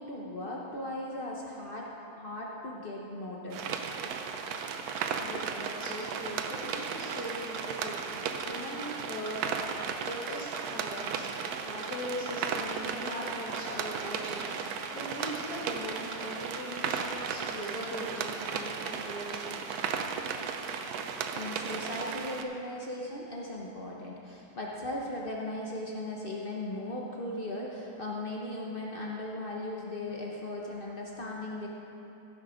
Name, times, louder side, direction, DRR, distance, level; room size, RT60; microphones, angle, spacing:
voice 1, 0.0-3.6 21.3-31.7, left 1 dB, 80° left, -2 dB, 0.4 m, -37 dB
sound 1, 3.5-22.4, right 6 dB, 90° right, 0.8 m, -35 dB
sound 2, 4.5-4.6 5.0-5.1 5.4-5.5 5.8-5.9 6.3-6.4 6.7-6.8 7.1-7.2 7.5-7.6 8.0-8.1 8.4-8.5 8.8-8.9 9.3-9.4 9.7-9.8 10.1-10.2 10.5-10.6 11.0-11.1 11.4-11.5 11.8-11.9 12.3-12.4 12.7-12.8 13.1-13.2 13.5-13.6 14.0-14.1 14.4-14.5 14.8-14.9 15.3-15.4 15.7-15.8 16.1-16.2 16.5-16.6 17.0-17.1 17.4-17.5 17.8-17.9, right 5 dB, 65° right, 1.6 m, -43 dB
voice 2, 5.2-11.3 11.6-14.5 14.9-19.8, equal, 45° left, -8 dB, 2.0 m, -40 dB
15.5 x 6.3 x 5.1 m, 2.9 s
omnidirectional pair, 2.4 m